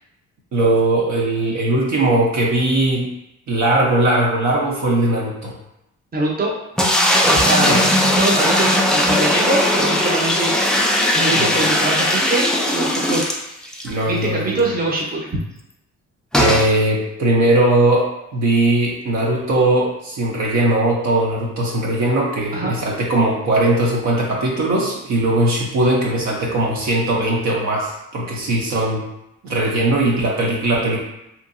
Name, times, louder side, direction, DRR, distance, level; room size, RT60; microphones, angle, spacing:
voice 1, 0.5-3.1 3.5-5.5 7.7-7.9 11.4-11.5 13.8-14.6 16.3-29.0 29.4-31.0, right 1 dB, 65° right, -3 dB, 0.7 m, -19 dB
voice 2, 6.1-6.5 7.2-7.8 8.2-10.5 11.1-13.4 14.1-15.3 22.5-22.7, right 2 dB, 30° right, -2 dB, 0.8 m, -23 dB
sound 1, 6.8-13.9 14.3-14.4 14.6-14.7 16.3-16.7, left 1 dB, ahead, 0.3 m, -18 dB
2.9 x 2.5 x 2.5 m, 0.86 s
cardioid pair, 90°, 30 cm